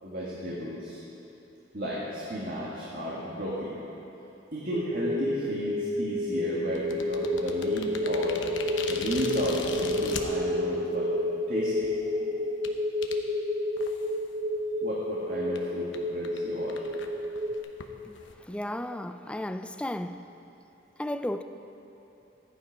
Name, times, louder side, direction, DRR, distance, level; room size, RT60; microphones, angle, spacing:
voice 1, 0.0-1.0 1.7-3.7 4.5-8.4 8.9-11.1 11.5-12.4 14.8-16.9, equal, 50° right, 1.8 m, -34 dB
sound 1, 4.7-17.6, left 1 dB, 35° right, 1.0 m, -30 dB
sound 2, 6.7-10.2 11.0-11.1 11.7-11.9 12.6-12.7 13.0-13.2 13.8-14.2 14.6-14.7 15.0-15.1 15.6-15.7 15.9-16.0 16.2-16.4 16.7-18.3, left 5 dB, 85° left, 0.9 m, -39 dB
voice 2, 18.5-20.2 21.0-21.4, left 1 dB, 5° left, 0.3 m, -33 dB
14.5 x 9.7 x 5.2 m
head